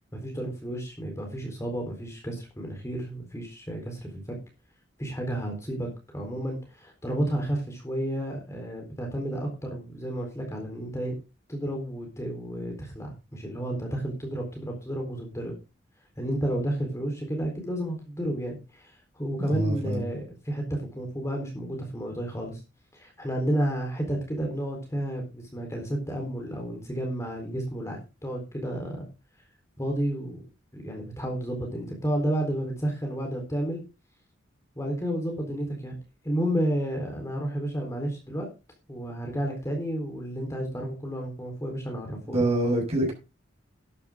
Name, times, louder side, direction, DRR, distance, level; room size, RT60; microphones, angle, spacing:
voice 1, 0.1-4.2 5.0-5.9 6.1-11.2 11.5-15.6 16.2-22.6 22.9-29.1 29.8-30.4 30.7-33.8 34.8-36.0 36.2-38.5 38.9-42.4, right 1 dB, 15° left, 2 dB, 4.0 m, -31 dB
voice 2, 19.4-20.1 42.3-43.1, right 1 dB, 30° right, 1 dB, 6.2 m, -25 dB
12.5 x 11.0 x 3.8 m, 0.29 s
head